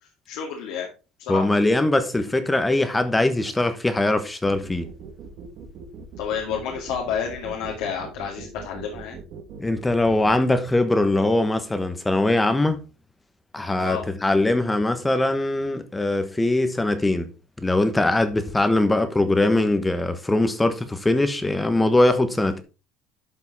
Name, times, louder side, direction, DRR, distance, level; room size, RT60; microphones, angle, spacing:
voice 1, 0.3-0.9 1.2-1.5 6.2-9.2 13.8-14.1, left 7 dB, 75° left, 2.3 m, -30 dB
voice 2, 1.3-4.9 9.6-12.8 13.5-17.3 17.6-22.6, left 2 dB, 10° left, 1.1 m, -21 dB
sound 1, 4.4-10.4, right 6 dB, 45° right, 1.8 m, -40 dB
12.0 x 5.4 x 4.1 m
cardioid pair, 155°, 0 cm